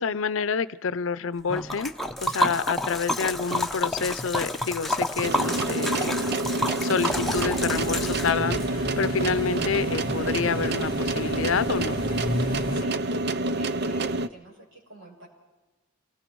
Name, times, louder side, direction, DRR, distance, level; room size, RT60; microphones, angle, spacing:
voice 1, 0.0-1.9 2.2-6.1 6.8-12.0, left 5 dB, 75° left, 16 dB, 0.6 m, -28 dB
Liquid, 1.5-8.7, left 1 dB, ahead, 0.9 m, -29 dB
sound 1, 5.2-14.3, right 2 dB, 55° right, 0.6 m, -28 dB
sound 2, 7.1-12.8, left 1 dB, 25° left, 1.3 m, -34 dB
voice 2, 12.3-15.3, right 2 dB, 75° right, -2 dB, 6.6 m, -48 dB
28.5 x 19.5 x 4.6 m, 1.2 s
head